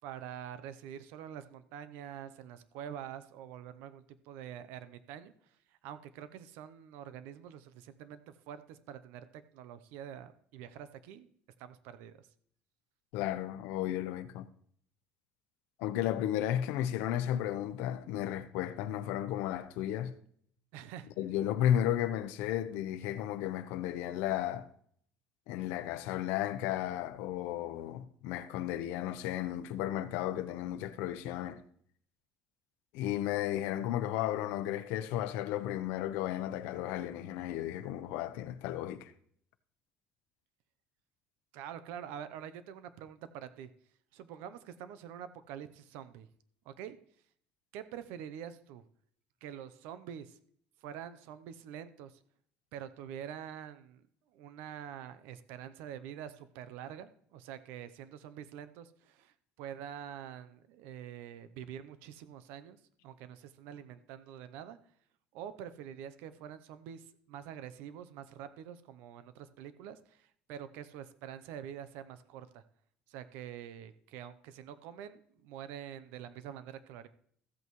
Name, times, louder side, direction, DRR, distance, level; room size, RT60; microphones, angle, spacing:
voice 1, 0.0-5.3 5.8-9.2 9.5-11.3 11.6-12.2 20.7-21.1 41.5-43.7 44.1-46.3 46.7-47.0 47.7-48.8 49.4-50.4 50.8-52.2 52.7-54.0 54.3-64.8 65.3-72.6 73.1-77.1, right 9 dB, 75° right, 0.6 m, -46 dB
voice 2, 13.1-14.5 15.8-20.1 21.2-24.7 25.5-31.6 32.9-39.1, left 12 dB, 80° left, 0.7 m, -34 dB
15.0 x 8.3 x 3.1 m
cardioid pair, 175°, 3 cm